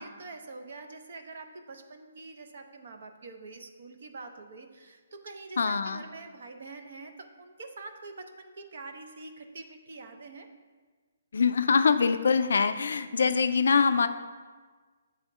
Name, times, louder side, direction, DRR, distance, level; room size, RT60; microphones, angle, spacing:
voice 1, 0.0-10.5, right 3 dB, 60° right, 6 dB, 0.6 m, -45 dB
voice 2, 5.6-6.0 11.3-14.1, left 5 dB, 75° left, 10 dB, 0.4 m, -24 dB
7.5 x 3.5 x 3.6 m, 1.4 s
hypercardioid pair, 160°, 0 cm